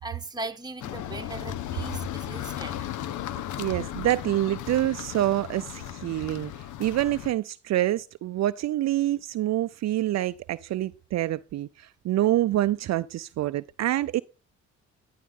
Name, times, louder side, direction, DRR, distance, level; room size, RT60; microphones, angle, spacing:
voice 1, 0.0-2.8, right 2 dB, 15° right, 1.7 m, -38 dB
sound 1, 0.8-7.3, left 12 dB, 80° left, 0.8 m, -36 dB
voice 2, 3.6-6.5 6.8-14.2, right 14 dB, 60° right, 0.5 m, -26 dB
11.0 x 11.0 x 3.6 m
cardioid pair, 90°, 30 cm